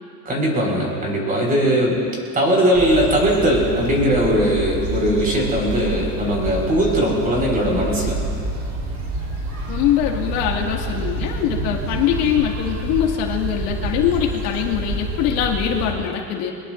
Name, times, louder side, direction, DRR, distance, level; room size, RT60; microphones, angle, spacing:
voice 1, 0.2-2.0 2.3-8.2, equal, 20° right, -1 dB, 4.5 m, -19 dB
sound 1, 2.7-15.9, right 2 dB, 40° right, 3.7 m, -28 dB
voice 2, 9.7-16.5, left 10 dB, 70° left, 0 dB, 2.2 m, -22 dB
24.0 x 20.5 x 2.6 m, 2.6 s
supercardioid pair, 145°, 44 cm